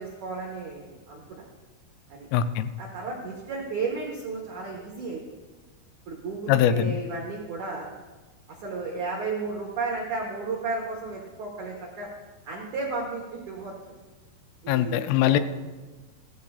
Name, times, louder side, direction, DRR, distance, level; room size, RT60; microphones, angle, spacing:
voice 1, 0.0-1.4 2.1-2.3 2.8-5.2 6.1-7.9 8.5-12.1 12.4-13.7 14.6-15.4, right 3 dB, 80° right, -2 dB, 1.7 m, -33 dB
voice 2, 2.3-2.7 6.5-7.0 14.7-15.4, left 10 dB, 90° left, 11 dB, 3.1 m, -22 dB
16.5 x 13.0 x 2.4 m, 1.2 s
omnidirectional pair, 5.5 m